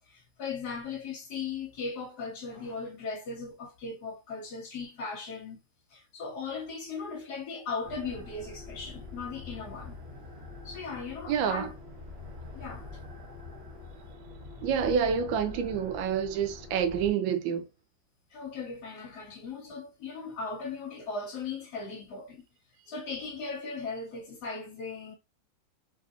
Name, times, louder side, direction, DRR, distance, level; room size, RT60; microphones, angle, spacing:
voice 1, 0.1-5.6 5.9-10.0 10.6-11.7 12.5-12.9 18.3-22.5 22.9-25.2, left 4 dB, 65° left, 1.2 m, -38 dB
sound 1, 7.8-17.1, left 3 dB, 45° right, 1.4 m, -45 dB
voice 2, 11.3-11.7 14.6-17.6, right 7 dB, 80° right, 1.3 m, -28 dB
3.3 x 2.5 x 2.4 m
omnidirectional pair, 2.1 m